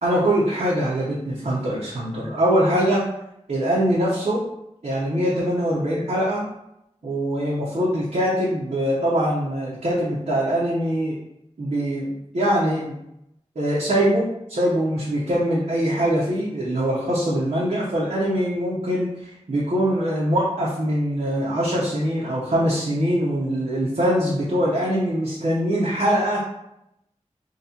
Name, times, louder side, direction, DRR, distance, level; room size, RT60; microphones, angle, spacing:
voice 1, 0.0-3.0 3.5-4.5 4.8-6.4 7.0-11.2 11.6-13.0 13.5-26.5, equal, 70° right, -8 dB, 0.8 m, -23 dB
3.8 x 2.3 x 2.8 m, 0.81 s
wide cardioid pair, 50°, 12 cm